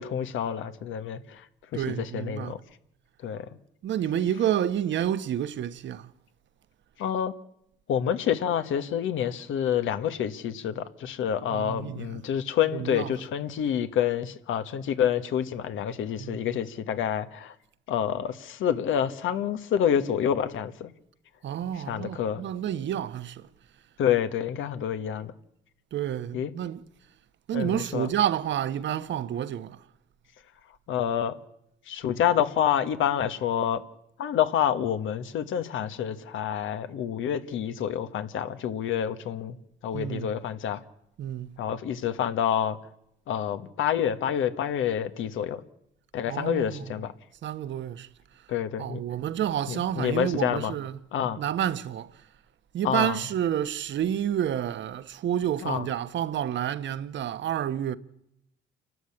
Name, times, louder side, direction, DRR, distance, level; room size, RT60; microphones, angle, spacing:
voice 1, 0.0-1.4 1.7-2.6 3.2-3.5 7.0-7.3 7.9-17.5 17.9-20.9 21.7-22.4 24.0-25.3 26.3-26.5 27.5-28.1 30.9-31.4 31.9-33.8 34.2-39.6 39.8-40.8 41.6-42.8 43.3-45.6 46.1-47.1 48.5-49.0 49.7-50.7 51.1-51.4 52.8-53.2 55.6-55.9, left 9 dB, 80° left, 1.4 m, -28 dB
voice 2, 1.7-2.5 3.8-6.1 11.5-12.2 12.7-13.1 16.2-16.4 21.4-23.4 25.9-26.8 27.5-29.8 39.9-40.3 41.2-41.5 46.3-46.9 47.4-48.1 48.8-51.0 51.4-52.1 52.7-58.0, right 10 dB, 70° right, 1.1 m, -29 dB
28.5 x 12.5 x 8.6 m
cardioid pair, 90°, 20 cm